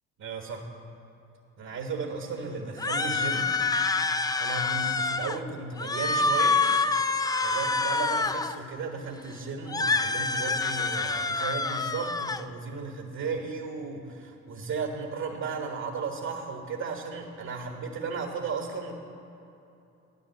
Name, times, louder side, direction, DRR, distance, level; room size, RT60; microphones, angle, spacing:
voice 1, 0.2-0.6 1.6-3.5 4.0-6.6 7.1-19.0, right 4 dB, 65° right, 2 dB, 1.6 m, -35 dB
sound 1, 2.8-5.4 5.8-8.6 9.7-12.4, left 3 dB, 15° left, 0.4 m, -27 dB
12.5 x 9.4 x 7.9 m, 2.9 s
cardioid pair, 90°, 30 cm